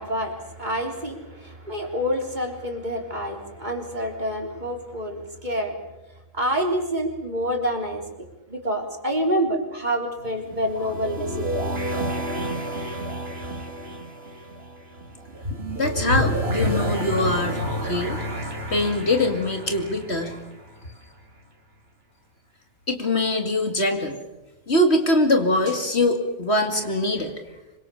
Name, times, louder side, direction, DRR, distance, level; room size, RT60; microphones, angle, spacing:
voice 1, 0.0-5.8 6.3-8.0 8.5-11.8, equal, 35° right, 2 dB, 3.8 m, -27 dB
sound 1, 10.2-21.0, equal, 50° right, 2.8 m, -29 dB
voice 2, 15.8-18.2 18.7-20.4 22.9-24.2 24.7-27.3, left 1 dB, 55° left, 5 dB, 2.6 m, -23 dB
26.0 x 23.5 x 7.0 m, 1.0 s
omnidirectional pair, 1.4 m